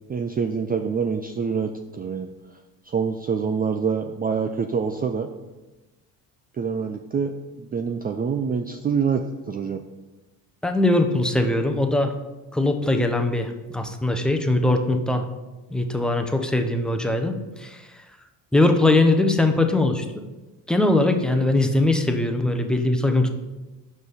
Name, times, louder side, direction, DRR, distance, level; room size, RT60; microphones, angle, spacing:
voice 1, 0.1-2.3 2.9-5.3 6.6-9.8, right 6 dB, 20° right, 6 dB, 0.4 m, -26 dB
voice 2, 10.6-12.1 12.5-15.3 15.7-17.8 18.5-20.1 20.7-23.3, left 2 dB, ahead, 5 dB, 0.8 m, -21 dB
6.1 x 5.1 x 5.6 m, 1.1 s
hypercardioid pair, 60°, 47 cm